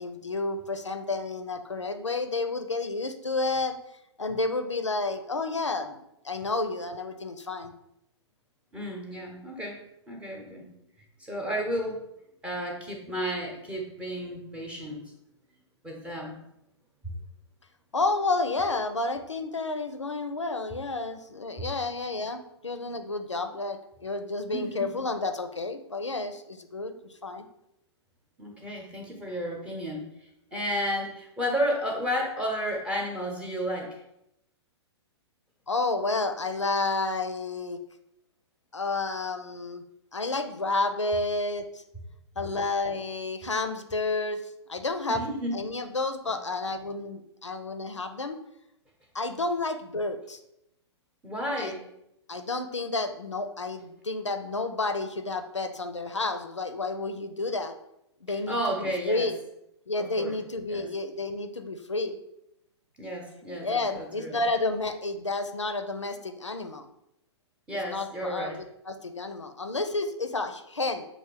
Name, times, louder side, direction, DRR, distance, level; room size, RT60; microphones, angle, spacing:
voice 1, 0.0-3.8 4.2-6.0 6.2-7.7 17.9-26.9 27.2-27.4 35.7-37.8 38.7-39.8 40.1-41.7 42.4-44.4 44.7-45.2 45.5-48.4 49.1-50.4 51.6-51.7 52.3-57.7 58.2-59.4 59.9-62.2 63.6-66.9 67.9-68.5 68.9-71.1, left 3 dB, 85° left, 8 dB, 0.4 m, -30 dB
voice 2, 8.7-9.8 10.1-10.7 11.2-12.0 12.4-15.0 15.8-16.4 24.5-25.0 28.4-30.0 30.5-34.0 45.1-45.5 51.2-51.9 58.3-59.3 60.0-60.4 60.7-60.9 63.0-64.4 67.7-68.6, equal, 10° right, 0 dB, 0.8 m, -32 dB
6.1 x 2.6 x 3.2 m, 0.82 s
figure-of-eight pair, 110°, 15 cm